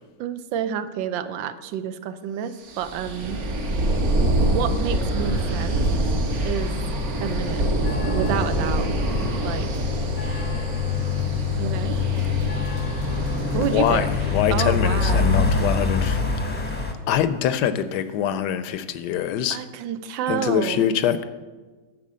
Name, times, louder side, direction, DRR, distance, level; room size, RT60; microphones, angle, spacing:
voice 1, 0.2-3.4 4.4-5.8 6.4-6.7 7.2-7.6 8.1-8.9 9.4-9.7 11.6-12.0 13.5-14.1 14.5-15.4 19.5-21.0, right 9 dB, 90° right, 11 dB, 1.4 m, -29 dB
sound 1, 2.6-14.4, right 1 dB, 55° right, 1.5 m, -26 dB
sound 2, 5.2-16.2, right 1 dB, 75° right, 2.3 m, -37 dB
sound 3, 6.7-16.9, left 5 dB, 10° left, 0.6 m, -26 dB
voice 2, 13.5-16.8 17.1-19.6 20.3-21.2, left 9 dB, 75° left, 12 dB, 1.1 m, -24 dB
10.5 x 4.4 x 7.4 m, 1.3 s
omnidirectional pair, 2.0 m